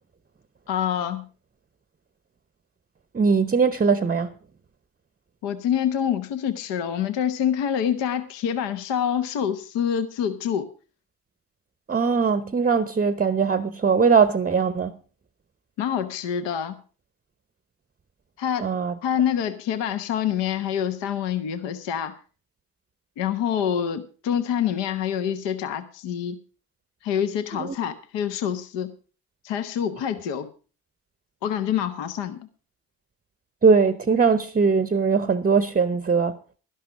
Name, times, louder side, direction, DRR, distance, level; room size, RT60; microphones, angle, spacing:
voice 1, 0.7-1.2 5.4-10.7 15.8-16.8 18.4-18.7 19.0-22.2 23.2-26.4 27.0-28.9 29.4-30.5 31.4-32.4, left 9 dB, 60° left, 1.1 m, -26 dB
voice 2, 3.1-4.3 11.9-14.9 18.6-18.9 27.5-27.8 33.6-36.4, right 5 dB, 20° right, 0.8 m, -20 dB
12.0 x 11.0 x 4.8 m
figure-of-eight pair, 40°, 47 cm